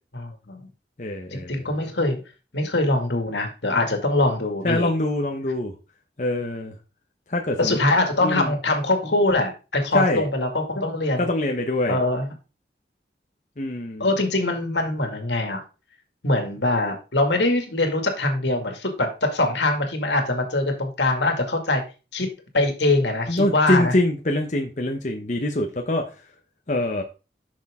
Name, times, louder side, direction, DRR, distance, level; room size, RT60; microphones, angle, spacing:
voice 1, 0.1-0.6 1.3-2.2 2.5-4.9 7.6-11.3 11.9-12.3 14.0-15.6 16.2-21.8 22.1-22.3 22.5-23.9, left 2 dB, 80° left, 4 dB, 2.2 m, -23 dB
voice 2, 1.0-1.6 4.6-5.7 6.2-6.7 7.3-7.8 8.2-8.5 9.9-10.3 11.2-12.0 13.6-14.1 23.3-26.1 26.7-27.0, left 1 dB, 40° left, 2 dB, 0.9 m, -24 dB
10.0 x 6.4 x 3.7 m, 0.31 s
head